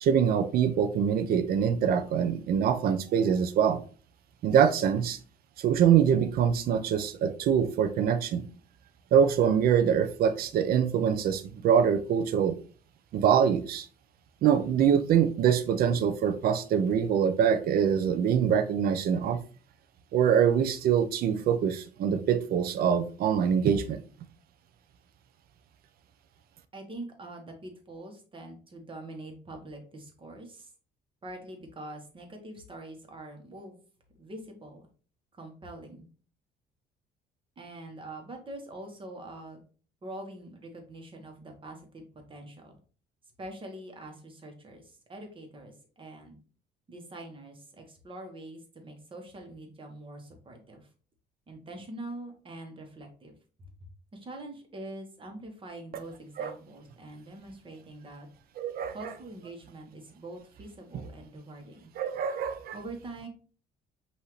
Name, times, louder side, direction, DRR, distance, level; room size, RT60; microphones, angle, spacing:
voice 1, 0.0-3.8 4.4-5.2 5.6-8.4 9.1-12.5 13.1-13.9 14.4-19.4 20.1-24.0 56.4-56.5 58.6-58.9 62.0-62.8, right 8 dB, 65° right, 11 dB, 0.6 m, -24 dB
voice 2, 26.7-30.7 31.2-33.8 34.2-34.9 35.3-36.0 37.6-39.6 40.0-42.0 42.3-42.7 43.4-46.4 46.9-50.9 51.5-53.7 54.1-58.3 58.9-61.9 62.7-63.3, right 1 dB, 30° right, 3 dB, 1.3 m, -44 dB
5.5 x 2.8 x 3.1 m, 0.40 s
cardioid pair, 110°, 17 cm